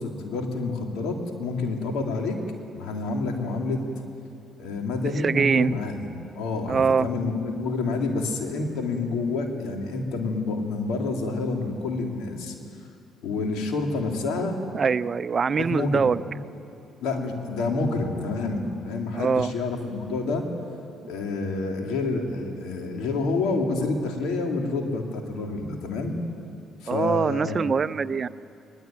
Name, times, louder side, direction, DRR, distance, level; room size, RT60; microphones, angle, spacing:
voice 1, 0.0-2.4 2.7-3.8 4.6-6.1 6.4-12.6 13.2-14.6 15.5-16.1 17.0-20.5 21.1-26.2 26.8-27.7, left 3 dB, 75° left, 2 dB, 3.4 m, -28 dB
voice 2, 5.2-5.7 6.7-7.1 14.7-16.2 19.1-19.5 26.9-28.3, right 5 dB, 45° right, 16 dB, 0.6 m, -23 dB
21.5 x 21.5 x 9.4 m, 2.6 s
supercardioid pair, 60°, 0 cm